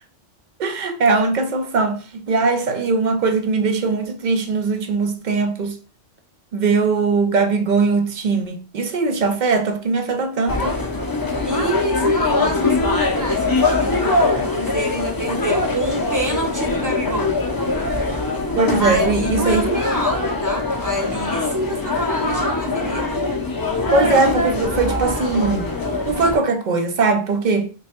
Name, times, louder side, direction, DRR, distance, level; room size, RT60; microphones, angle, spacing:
voice 1, 0.6-2.0 2.3-5.8 6.5-10.7 18.6-19.7 23.9-25.7 26.1-27.7, right 4 dB, 60° right, 0.5 m, -20 dB
sound 1, 10.5-26.4, left 2 dB, 35° left, 0.4 m, -22 dB
voice 2, 11.4-17.4 18.8-23.3, right 1 dB, 20° right, 0.7 m, -26 dB
3.2 x 2.2 x 4.2 m
omnidirectional pair, 1.2 m